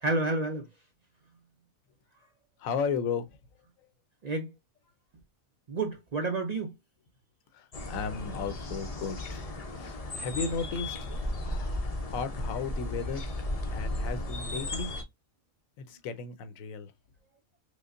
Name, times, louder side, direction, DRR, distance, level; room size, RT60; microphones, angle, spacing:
voice 1, 0.0-0.7 4.2-4.5 5.7-6.7, right 3 dB, 75° right, 0.3 m, -30 dB
voice 2, 2.6-3.4 7.5-9.5 9.7-13.2 13.7-14.9 15.8-16.9, left 5 dB, 75° left, 1.0 m, -35 dB
sound 1, 7.7-15.0, left 1 dB, 45° left, 0.4 m, -35 dB
5.0 x 2.1 x 2.4 m
omnidirectional pair, 1.4 m